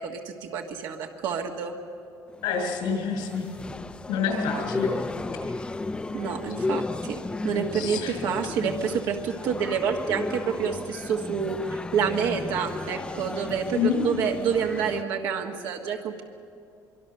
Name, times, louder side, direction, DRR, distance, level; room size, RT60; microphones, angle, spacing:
voice 1, 0.0-1.8 6.1-16.2, right 7 dB, 75° right, 1 dB, 1.6 m, -28 dB
sound 1, 2.3-15.0, left 3 dB, 15° left, 0.5 m, -34 dB
voice 2, 2.4-3.5 4.1-4.9 7.7-8.2 13.8-14.0, left 6 dB, 85° left, 3 dB, 5.3 m, -27 dB
24.0 x 24.0 x 6.7 m, 2.6 s
cardioid pair, 145°, 8 cm